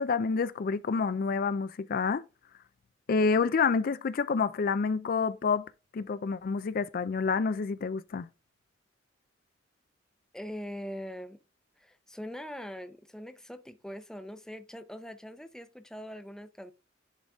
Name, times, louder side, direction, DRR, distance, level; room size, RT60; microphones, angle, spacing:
voice 1, 0.0-2.2 3.1-5.6 5.9-8.3, left 5 dB, 50° left, 0.4 m, -28 dB
voice 2, 10.3-11.4 11.8-16.7, equal, 5° left, 0.6 m, -42 dB
10.5 x 4.0 x 3.5 m
head